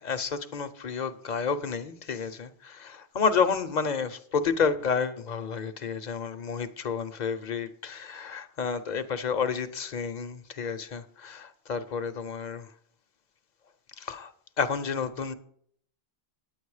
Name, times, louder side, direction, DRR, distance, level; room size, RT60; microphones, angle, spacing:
voice 1, 0.0-12.7 14.0-14.3 14.6-15.3, left 5 dB, 45° left, 0.8 m, -30 dB
9.6 x 9.2 x 4.8 m
omnidirectional pair, 1.1 m